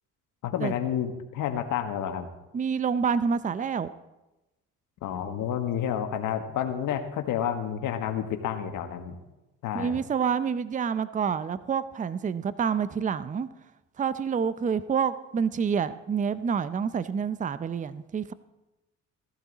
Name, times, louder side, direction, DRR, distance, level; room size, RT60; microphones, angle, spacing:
voice 1, 0.4-2.3 5.0-9.2 9.6-10.0, left 9 dB, 70° left, 7 dB, 1.5 m, -30 dB
voice 2, 2.5-3.9 9.7-13.5 14.0-18.3, right 6 dB, 25° right, 15 dB, 0.6 m, -28 dB
17.0 x 12.0 x 4.1 m, 1.0 s
supercardioid pair, 80°, 33 cm